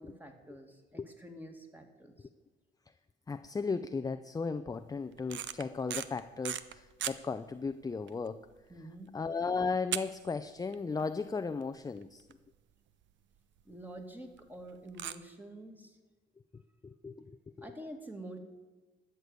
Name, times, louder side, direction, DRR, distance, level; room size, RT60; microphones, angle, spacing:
voice 1, 0.0-2.3 8.7-9.1 13.6-16.0 17.6-18.4, right 1 dB, 10° right, 4 dB, 2.2 m, -48 dB
voice 2, 3.3-8.4 9.1-12.2 16.8-17.2 17.6-17.7, left 4 dB, 20° left, 10 dB, 0.5 m, -35 dB
sound 1, 5.2-7.2 7.7-7.8 8.1-8.3 8.7-8.8 9.9-10.7 11.0-11.1 11.6-11.7 12.0-12.1 12.3-12.4 13.6-13.7 14.9-15.2, right 11 dB, 70° right, 0.7 m, -37 dB
13.0 x 6.7 x 9.3 m, 1.2 s
cardioid pair, 90°, 20 cm